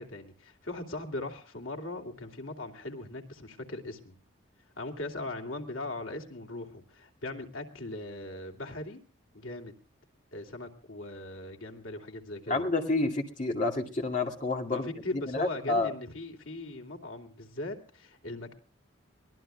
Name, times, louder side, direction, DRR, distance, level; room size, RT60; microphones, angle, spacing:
voice 1, 0.0-4.1 4.8-9.0 9.3-9.7 10.3-12.6 14.7-18.5, left 2 dB, 90° left, 2 dB, 2.8 m, -39 dB
voice 2, 12.5-14.9 15.1-15.9, left 2 dB, 40° left, 2 dB, 2.5 m, -29 dB
23.5 x 19.5 x 2.3 m, 0.38 s
head